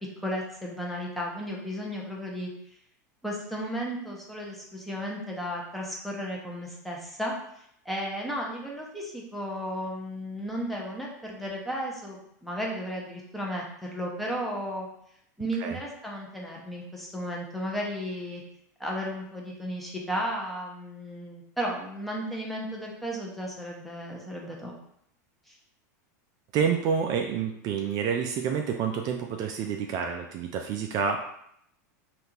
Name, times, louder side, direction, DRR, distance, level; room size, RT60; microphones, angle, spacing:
voice 1, 0.2-2.5 3.2-14.9 15.4-18.4 18.8-24.7 25.5-25.6, equal, ahead, -3 dB, 0.8 m, -34 dB
voice 2, 26.5-31.2, right 7 dB, 45° right, 3 dB, 0.3 m, -28 dB
3.5 x 2.4 x 2.8 m, 0.73 s
hypercardioid pair, 110°, 9 cm